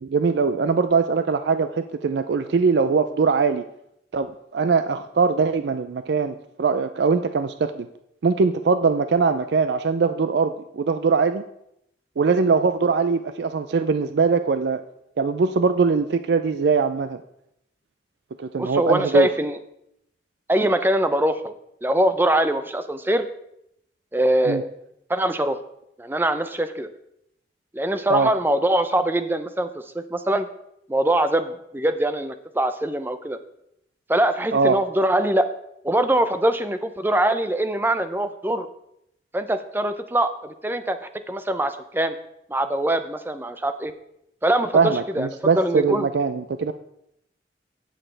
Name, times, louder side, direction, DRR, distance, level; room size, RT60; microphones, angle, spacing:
voice 1, 0.0-3.6 4.1-7.9 8.2-11.4 12.2-14.8 15.2-17.2 18.4-19.3 24.5-24.6 28.1-28.3 34.5-34.8 44.7-46.7, right 5 dB, 70° right, 10 dB, 0.4 m, -21 dB
voice 2, 18.6-19.6 20.5-21.5 21.8-23.3 24.1-24.7 25.1-25.6 26.0-26.9 27.7-30.5 30.9-33.4 34.1-35.5 35.8-38.7 39.3-42.2 42.5-43.9 44.4-45.3 45.5-46.1, right 1 dB, 10° right, 10 dB, 0.5 m, -23 dB
16.5 x 6.5 x 3.3 m, 0.78 s
head